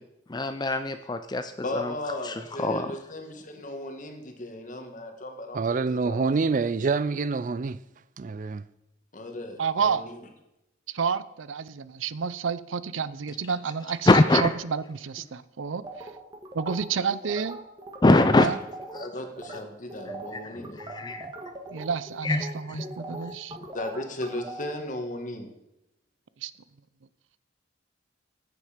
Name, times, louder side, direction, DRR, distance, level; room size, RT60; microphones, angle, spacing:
voice 1, 0.3-1.9 2.2-2.9 14.1-14.4 18.0-18.5 19.0-19.1 19.5-19.6 20.1-21.3 22.2-23.6, left 2 dB, 20° left, 0.5 m, -24 dB
voice 2, 1.6-6.2 9.1-10.1 18.9-20.8 23.7-25.5, left 1 dB, 40° left, 1.7 m, -36 dB
voice 3, 5.5-7.8 8.2-8.6, right 4 dB, 45° right, 0.4 m, -26 dB
voice 4, 9.6-10.1 10.9-14.1 14.4-16.1 16.5-17.6 18.4-18.6 21.7-23.6 26.4-26.5, right 6 dB, 90° right, 0.6 m, -30 dB
sound 1, 15.8-19.1 19.4-19.6 19.9-24.7, right 2 dB, 25° right, 1.7 m, -40 dB
14.5 x 9.6 x 5.0 m
head